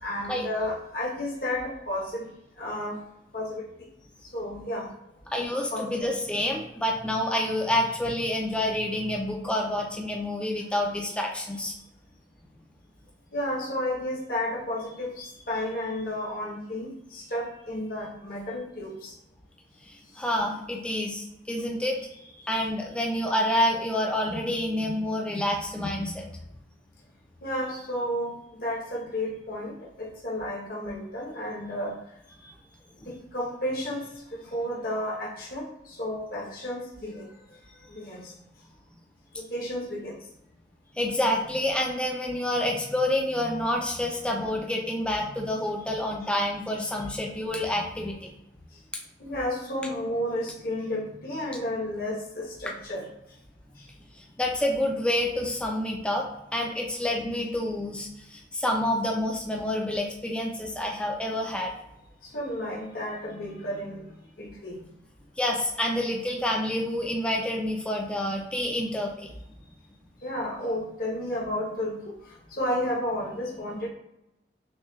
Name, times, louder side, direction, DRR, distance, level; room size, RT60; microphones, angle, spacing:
voice 1, 0.0-3.0 3.3-3.7 4.3-4.9 5.7-6.1 13.3-19.1 27.4-32.0 33.0-34.1 34.3-37.6 37.9-38.3 39.4-40.2 49.2-53.0 62.2-64.1 64.4-64.8 70.2-72.1 72.5-73.9, left 1 dB, 55° left, -4 dB, 0.9 m, -32 dB
voice 2, 5.3-11.7 19.8-22.0 22.5-26.2 41.0-48.3 48.9-49.0 54.1-56.3 56.5-61.7 65.4-69.3, left 1 dB, 5° left, 0 dB, 0.3 m, -28 dB
6.1 x 2.3 x 2.2 m, 0.86 s
head